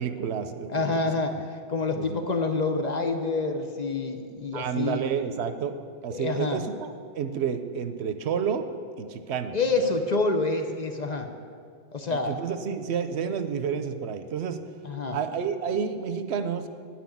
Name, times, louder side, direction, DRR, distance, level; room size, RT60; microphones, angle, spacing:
voice 1, 0.0-1.0 2.0-2.2 4.5-6.9 7.2-8.6 9.0-9.9 12.1-14.6 15.1-16.7, right 7 dB, 75° right, 9 dB, 0.9 m, -30 dB
voice 2, 0.7-5.0 6.1-6.6 9.5-11.3 11.9-12.3 14.8-15.2, left 3 dB, 45° left, 5 dB, 0.7 m, -27 dB
9.8 x 6.1 x 8.4 m, 2.3 s
omnidirectional pair, 1.1 m